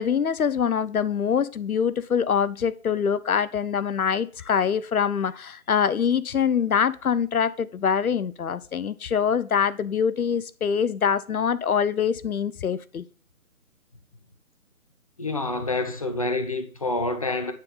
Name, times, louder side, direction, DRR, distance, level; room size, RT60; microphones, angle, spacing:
voice 1, 0.0-13.0, left 7 dB, 80° left, 0.6 m, -24 dB
voice 2, 15.2-17.5, left 2 dB, 25° left, 0.6 m, -27 dB
9.6 x 3.8 x 5.4 m
figure-of-eight pair, 145°, 43 cm